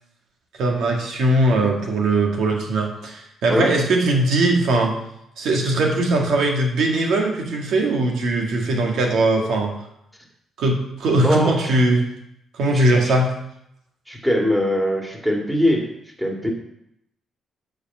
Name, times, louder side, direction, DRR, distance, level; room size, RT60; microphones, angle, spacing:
voice 1, 0.6-4.9 5.4-9.7 10.6-12.1 12.5-13.3, right 2 dB, 75° right, 1 dB, 1.7 m, -20 dB
voice 2, 11.2-11.7 12.7-13.1 14.1-15.9 16.2-16.5, equal, 5° right, 0 dB, 2.1 m, -21 dB
9.9 x 5.3 x 6.0 m, 0.79 s
cardioid pair, 90°, 0 cm